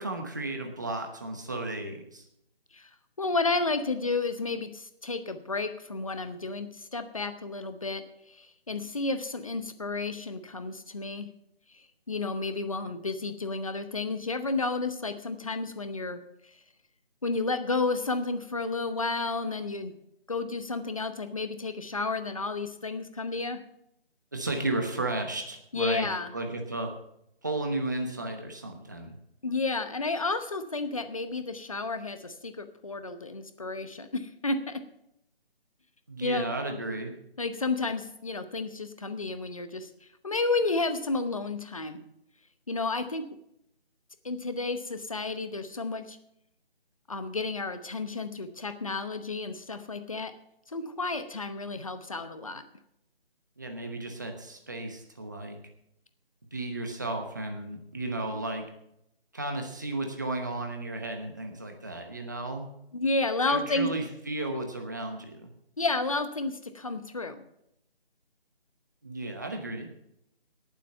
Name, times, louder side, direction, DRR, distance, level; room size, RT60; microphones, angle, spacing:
voice 1, 0.0-2.2 24.3-26.9 27.4-29.1 36.1-37.1 53.6-55.6 56.5-58.6 59.3-62.7 63.5-65.5 69.0-69.9, right 2 dB, 20° right, 4 dB, 1.0 m, -34 dB
voice 2, 3.2-8.0 8.3-11.3 12.1-16.2 17.2-19.9 20.3-23.6 25.7-26.3 29.4-34.8 36.2-36.5 37.4-39.9 40.2-42.0 42.7-43.2 44.2-46.2 47.1-50.3 50.7-52.6 62.9-63.9 65.8-67.4, left 3 dB, 35° left, 10 dB, 0.9 m, -31 dB
18.0 x 7.5 x 5.5 m, 0.78 s
figure-of-eight pair, 170°, 31 cm